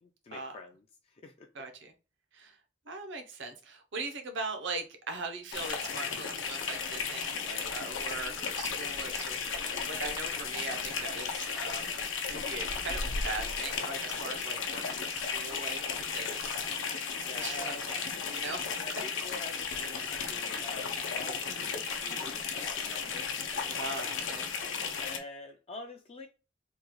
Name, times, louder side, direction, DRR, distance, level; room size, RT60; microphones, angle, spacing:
voice 1, 0.0-0.8 1.1-1.5 10.7-10.8 17.2-17.8 18.8-23.8 25.0-26.3, left 2 dB, 35° left, 0.3 m, -46 dB
voice 2, 1.5-1.9 2.3-2.6 2.9-11.8 12.3-16.9 17.3-18.8 21.4-21.7 23.7-24.5, right 3 dB, 70° right, 0.7 m, -40 dB
sound 1, 5.5-25.2, left 5 dB, 80° left, 0.6 m, -35 dB
3.6 x 2.3 x 3.0 m
head